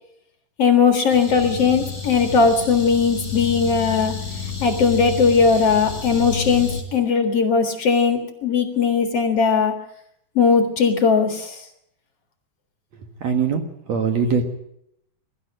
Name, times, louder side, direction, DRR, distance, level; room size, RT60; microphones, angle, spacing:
voice 1, 0.6-4.1 4.6-9.7 10.4-11.6, left 5 dB, 50° left, 5 dB, 2.5 m, -18 dB
sound 1, 1.1-6.8, left 5 dB, 25° left, 4.8 m, -30 dB
voice 2, 12.9-14.4, right 6 dB, 55° right, 5 dB, 2.6 m, -23 dB
22.5 x 13.0 x 8.9 m, 0.77 s
omnidirectional pair, 4.0 m